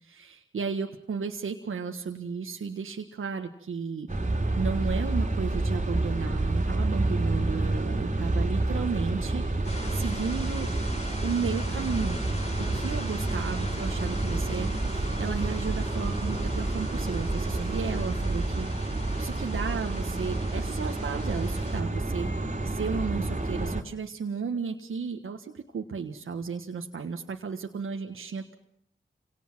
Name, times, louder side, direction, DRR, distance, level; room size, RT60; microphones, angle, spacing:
voice 1, 0.0-10.7 11.2-12.2 12.6-28.5, right 5 dB, 80° right, 4 dB, 1.5 m, -34 dB
sound 1, 4.1-23.8, right 2 dB, 35° right, 2.8 m, -29 dB
sound 2, 9.6-21.8, left 1 dB, 35° left, 7.1 m, -42 dB
26.5 x 18.5 x 6.1 m, 0.65 s
cardioid pair, 45°, 21 cm